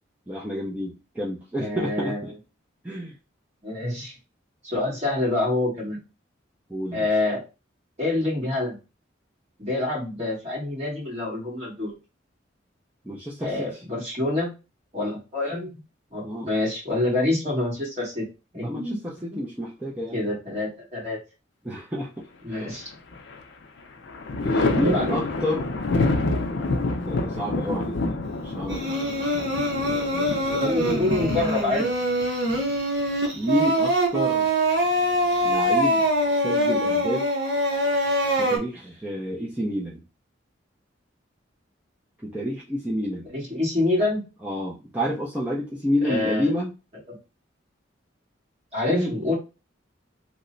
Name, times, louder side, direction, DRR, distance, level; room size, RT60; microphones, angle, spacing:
voice 1, 0.3-2.3 2.8-3.1 6.7-7.1 13.0-13.7 16.2-16.5 18.6-20.2 21.6-22.1 22.5-22.8 24.4-25.7 27.0-28.2 28.4-29.4 29.8-30.7 33.3-34.5 35.4-36.1 36.4-37.3 38.4-40.0 42.2-43.3 44.4-46.7 48.9-49.1, equal, 10° right, -6 dB, 0.5 m, -29 dB
voice 2, 1.6-2.2 3.6-4.1 4.6-6.0 6.9-7.4 8.0-8.8 9.6-11.9 13.4-14.5 14.9-15.7 16.1-18.2 18.5-19.0 20.1-21.2 22.4-22.9 24.6-25.2 30.6-31.9 43.3-44.2 46.0-46.5 47.1-47.2 48.7-49.3, left 2 dB, 35° right, -5 dB, 1.6 m, -26 dB
Thunder, 22.6-23.4 23.8-33.4 34.9-35.7, left 2 dB, 70° left, 0.5 m, -28 dB
Singing, 28.7-38.6, right 1 dB, 60° right, 0.8 m, -24 dB
3.0 x 2.1 x 3.8 m, 0.30 s
head